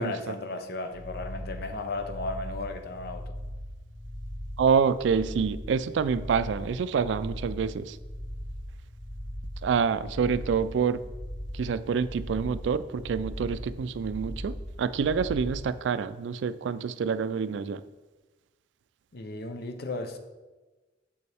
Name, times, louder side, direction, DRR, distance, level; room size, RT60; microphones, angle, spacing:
voice 1, 0.0-3.3 19.1-20.2, left 2 dB, 60° left, 7 dB, 0.7 m, -35 dB
sound 1, 0.9-15.6, equal, 30° left, 1.0 m, -39 dB
voice 2, 4.6-7.9 9.6-11.0 11.6-17.8, right 6 dB, 70° right, 15 dB, 0.3 m, -27 dB
7.2 x 6.7 x 3.4 m, 1.2 s
head